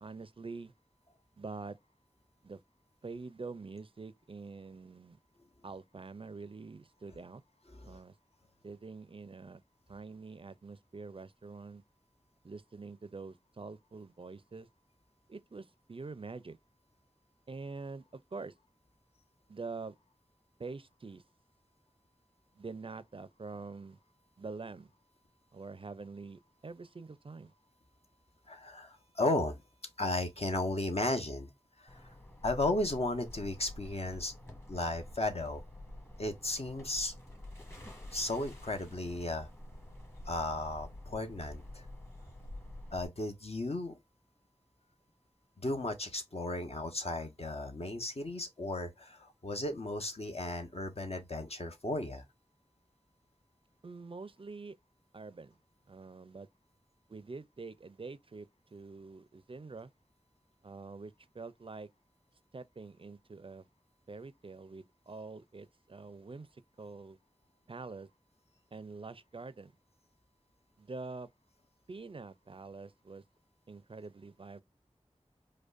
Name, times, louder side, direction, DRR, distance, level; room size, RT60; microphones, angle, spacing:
voice 1, 0.0-0.7 1.4-1.8 2.4-2.6 3.0-5.2 5.6-7.4 7.8-8.1 8.6-9.6 9.9-11.8 12.4-14.7 15.3-16.6 17.5-18.5 19.5-19.9 20.6-21.2 22.6-24.0 24.4-24.9 25.5-27.5 53.8-54.8 55.1-55.5 55.9-56.5 57.1-59.9 60.6-61.9 62.5-63.7 64.1-66.5 66.8-67.2 67.7-68.1 68.7-69.7 70.8-71.3 71.9-73.2 73.7-74.6, right 4 dB, 50° right, 0.4 m, -45 dB
voice 2, 28.5-29.6 30.0-31.5 31.8-32.1 32.4-34.3 34.7-35.6 36.2-37.1 38.1-39.5 40.3-41.8 42.9-44.0 45.6-52.2, left 2 dB, 55° left, 0.9 m, -35 dB
sound 1, 31.9-43.1, left 1 dB, 20° left, 1.3 m, -48 dB
5.0 x 2.1 x 2.4 m
wide cardioid pair, 55°, 12 cm